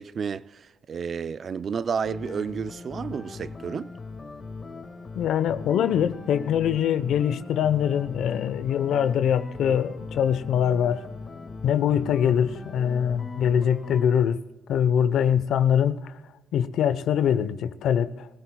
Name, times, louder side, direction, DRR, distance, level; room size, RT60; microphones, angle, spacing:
voice 1, 0.0-3.9, right 6 dB, 40° right, 0.4 m, -31 dB
sound 1, 2.0-14.0, left 4 dB, 30° left, 1.8 m, -40 dB
voice 2, 5.1-11.0 11.6-14.4 14.7-16.2 16.5-18.3, left 9 dB, 60° left, 0.8 m, -23 dB
25.0 x 15.5 x 2.3 m
supercardioid pair, 85°, 0 cm